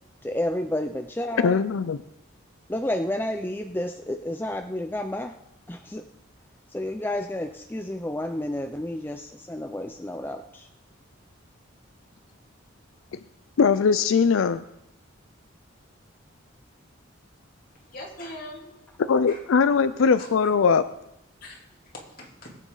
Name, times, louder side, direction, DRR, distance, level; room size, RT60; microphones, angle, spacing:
voice 1, 0.2-1.6 2.7-5.3 5.7-6.0 6.7-10.7, left 1 dB, 10° left, 5 dB, 0.4 m, -30 dB
voice 2, 1.4-2.0 13.6-14.6 19.0-20.9, left 5 dB, 80° left, 13 dB, 0.4 m, -20 dB
voice 3, 17.7-18.7 19.3-19.4 20.2-20.5 21.4-22.6, left 1 dB, 45° left, -2 dB, 3.1 m, -42 dB
20.5 x 9.1 x 3.9 m, 0.88 s
head